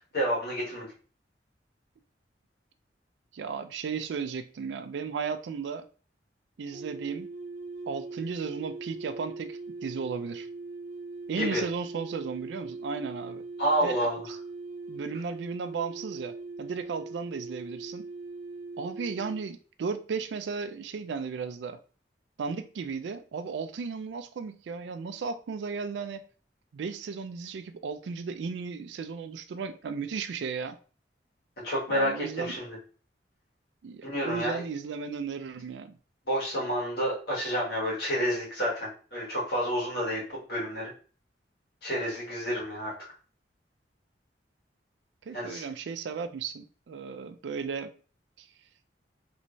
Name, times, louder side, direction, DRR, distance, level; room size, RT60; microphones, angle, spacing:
voice 1, 0.1-0.9 11.4-11.6 13.6-14.2 31.6-32.1 32.4-32.7 34.0-34.6 36.3-40.2 40.5-40.9 41.8-42.9 45.3-45.6, equal, 60° left, 1.7 m, -29 dB
voice 2, 3.3-5.9 6.6-7.3 7.9-10.5 11.3-13.4 13.8-14.4 14.9-18.1 18.8-21.8 22.4-26.2 26.7-30.8 31.9-32.6 33.8-36.0 45.2-47.9 48.4-48.5, right 5 dB, 80° right, 0.4 m, -35 dB
sound 1, 6.7-19.4, right 3 dB, 50° right, 0.7 m, -41 dB
3.1 x 3.1 x 2.6 m
head